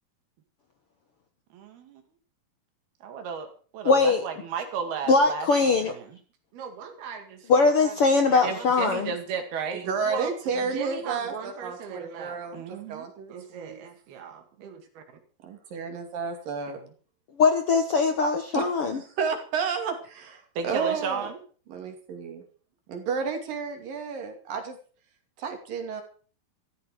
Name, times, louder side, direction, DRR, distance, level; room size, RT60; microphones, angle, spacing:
voice 1, 3.0-3.5 3.7-6.2 6.5-7.5 7.8-7.9 8.3-10.3 10.6-15.0 16.7-16.8 20.6-21.4, right 6 dB, 90° right, 6 dB, 4.1 m, -35 dB
voice 2, 3.8-4.2 5.1-5.9 7.5-9.1 17.4-19.0, left 4 dB, 60° left, 6 dB, 1.5 m, -21 dB
voice 3, 9.7-13.8 15.4-16.8 18.5-21.3 21.7-22.4 22.9-24.8 25.4-26.0, right 5 dB, 65° right, 5 dB, 4.2 m, -32 dB
14.0 x 14.0 x 4.8 m, 0.41 s
omnidirectional pair, 4.3 m